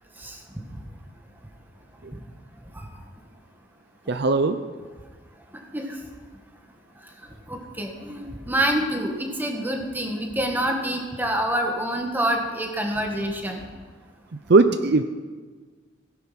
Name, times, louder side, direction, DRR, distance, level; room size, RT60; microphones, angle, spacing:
voice 1, 4.1-4.6 14.5-15.0, right 3 dB, 55° right, 10 dB, 0.6 m, -18 dB
voice 2, 7.5-13.6, right 1 dB, 10° right, 2 dB, 1.7 m, -27 dB
17.0 x 10.0 x 5.9 m, 1.5 s
head